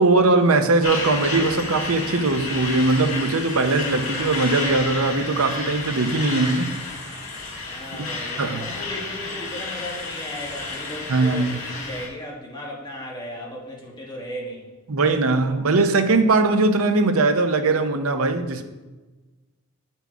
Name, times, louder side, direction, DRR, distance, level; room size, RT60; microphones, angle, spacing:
voice 1, 0.0-6.7 7.9-8.1 8.4-8.6 11.1-11.6 14.9-18.6, right 3 dB, 75° right, 0.7 m, -20 dB
Truck, 0.8-12.1, left 3 dB, 60° left, 2.0 m, -31 dB
voice 2, 7.7-14.6, left 1 dB, 20° left, 1.5 m, -36 dB
8.3 x 4.4 x 4.5 m
head